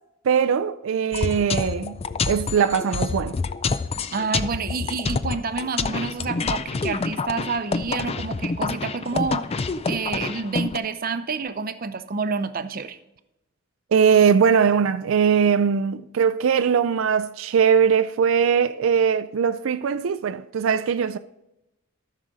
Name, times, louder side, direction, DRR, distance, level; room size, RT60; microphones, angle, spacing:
voice 1, 0.2-2.0 2.3-3.4 13.9-21.2, right 7 dB, 85° right, 0.4 m, -20 dB
sound 1, 1.1-10.8, left 4 dB, 30° left, 0.4 m, -27 dB
voice 2, 4.1-13.0, right 4 dB, 45° right, 0.6 m, -29 dB
13.5 x 6.4 x 4.0 m
head